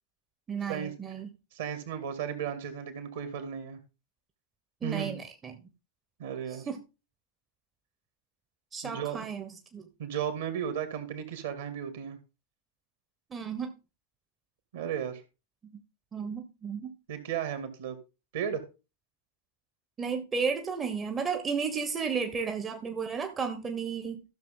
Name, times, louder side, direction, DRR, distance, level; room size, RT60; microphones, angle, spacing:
voice 1, 0.5-1.3 4.8-5.6 6.7-6.8 8.7-9.9 13.3-13.7 16.1-16.9 20.0-24.2, right 5 dB, 20° right, 1.2 m, -33 dB
voice 2, 1.5-3.8 4.8-5.2 6.2-6.7 8.8-9.3 10.0-12.2 14.7-15.2 17.1-18.0 18.3-18.6, right 8 dB, 55° right, 2.3 m, -34 dB
14.5 x 6.6 x 3.8 m
figure-of-eight pair, 90°, 0 cm